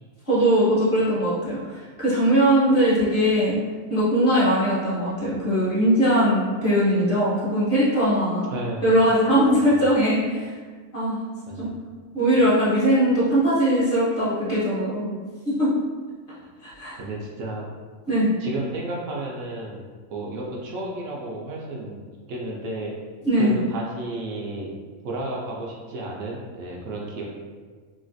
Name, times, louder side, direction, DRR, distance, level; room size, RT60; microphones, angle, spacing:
voice 1, 0.3-3.6 3.9-8.5 8.8-10.5 10.9-11.2 11.6-11.7 12.1-15.1 15.4-15.7 16.6-17.0 18.1-18.3 23.2-23.6, equal, 40° left, -9 dB, 1.1 m, -20 dB
voice 2, 8.5-8.9 9.5-9.8 11.5-11.8 17.0-17.7 18.4-19.8 20.1-22.0 22.3-22.9 23.4-24.7 25.0-27.2, right 2 dB, 70° right, -2 dB, 0.9 m, -32 dB
3.1 x 2.4 x 2.5 m, 1.5 s
omnidirectional pair, 1.4 m